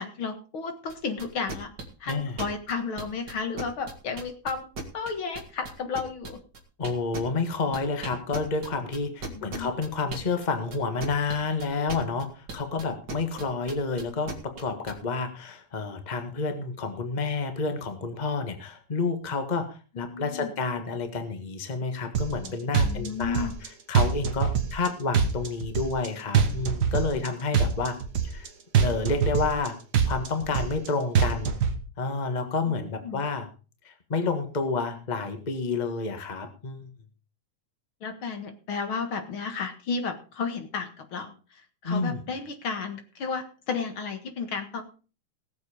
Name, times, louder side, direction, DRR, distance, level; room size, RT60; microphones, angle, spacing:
voice 1, 0.0-1.7 2.0-4.7 4.9-6.4 9.3-9.8 20.0-20.5 22.4-22.5 22.8-23.5 32.7-33.2 38.0-44.8, left 5 dB, 45° left, 7 dB, 2.0 m, -33 dB
sound 1, 0.9-14.9, right 3 dB, 35° right, 2.4 m, -37 dB
voice 2, 2.1-2.4 6.8-23.5 23.9-28.0 28.2-28.5 28.8-29.8 30.1-31.6 32.0-33.5 33.8-36.9 41.8-42.2, left 4 dB, 80° left, 7 dB, 0.4 m, -29 dB
sound 2, 22.1-22.5 22.7-23.7 23.9-24.9 25.1-26.1 26.3-27.3 27.5-28.5 28.7-29.7 29.9-30.9 31.1-31.7, right 7 dB, 60° right, 1.0 m, -23 dB
18.5 x 7.6 x 5.0 m, 0.36 s
omnidirectional pair, 3.8 m